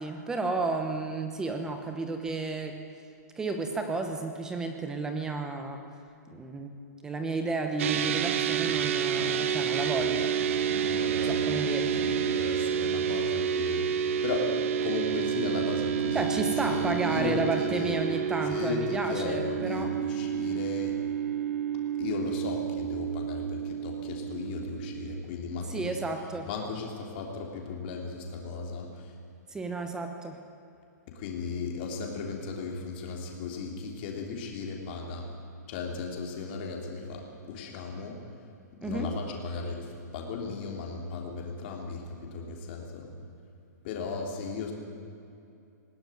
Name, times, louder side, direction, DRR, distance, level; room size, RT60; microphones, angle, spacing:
voice 1, 0.0-2.8 3.4-5.8 6.3-10.3 11.2-12.1 16.1-19.9 25.7-26.5 29.5-30.4 38.8-39.1, right 3 dB, 5° right, 5 dB, 1.1 m, -32 dB
sound 1, 7.8-25.2, right 8 dB, 45° right, 1.1 m, -29 dB
voice 2, 10.7-18.0 18.5-21.0 22.0-26.0 26.4-29.1 31.1-35.3 35.7-38.2 38.8-43.1 43.8-44.7, left 4 dB, 35° left, 1 dB, 3.5 m, -36 dB
20.0 x 18.0 x 9.3 m, 2.6 s
hypercardioid pair, 170°, 10 cm